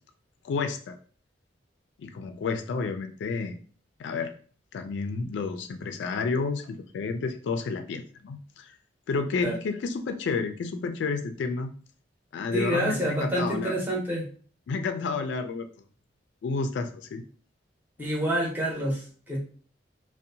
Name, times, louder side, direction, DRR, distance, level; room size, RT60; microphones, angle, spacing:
voice 1, 0.4-1.0 2.0-3.6 4.0-4.3 4.7-8.8 9.1-11.7 12.3-13.7 14.7-15.7 16.4-17.2 18.0-18.1, left 4 dB, 70° left, 7 dB, 0.3 m, -30 dB
voice 2, 12.5-14.3 18.0-19.4, right 1 dB, 10° right, -4 dB, 0.8 m, -28 dB
2.6 x 2.1 x 2.6 m, 0.42 s
head